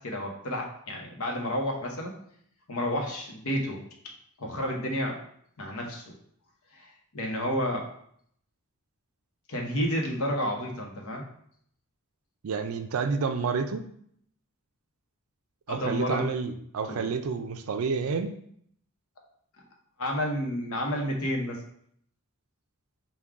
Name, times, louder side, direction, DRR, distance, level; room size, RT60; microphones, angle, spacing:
voice 1, 0.0-2.2 2.7-3.8 4.4-5.2 5.6-6.1 6.7-7.9 9.5-11.2 15.7-16.3 16.9-17.0 20.0-21.6, equal, 70° left, 1 dB, 0.9 m, -30 dB
voice 2, 12.4-13.8 15.7-18.4, right 5 dB, 65° right, 8 dB, 0.4 m, -29 dB
3.7 x 2.3 x 4.5 m, 0.67 s
head